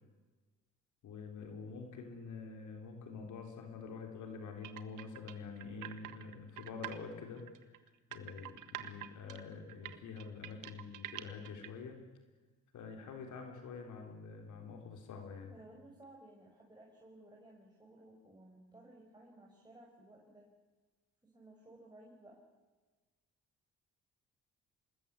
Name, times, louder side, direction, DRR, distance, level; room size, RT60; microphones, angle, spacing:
voice 1, 1.0-7.8 8.1-12.0 12.7-15.6, left 5 dB, 80° left, 4 dB, 4.0 m, -47 dB
sound 1, 4.6-7.0 7.4-11.7, right 14 dB, 90° right, 1.7 m, -46 dB
voice 2, 15.5-20.5 21.2-22.4, right 1 dB, 15° right, -1 dB, 6.4 m, -57 dB
26.5 x 20.5 x 8.4 m, 1.3 s
cardioid pair, 90°, 30 cm